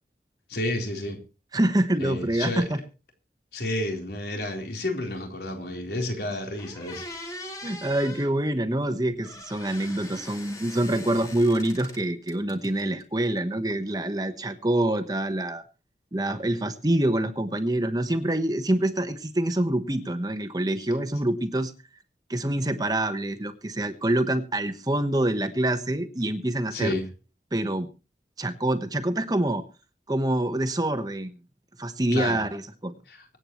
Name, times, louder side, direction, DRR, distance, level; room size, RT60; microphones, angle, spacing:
voice 1, 0.5-1.2 2.0-2.7 3.5-7.1 26.7-27.1 32.1-32.4 33.1-33.2, left 1 dB, 70° left, 3.9 m, -30 dB
voice 2, 1.5-2.8 7.6-15.6 16.1-21.7 22.3-26.9 27.5-27.9 28.4-29.6 30.1-31.3 31.8-32.9, right 1 dB, 20° right, 1.1 m, -26 dB
sound 1, 6.1-6.2 6.6-8.3 9.2-12.0 12.3-13.0, left 1 dB, 20° left, 2.2 m, -41 dB
24.5 x 8.8 x 3.1 m
head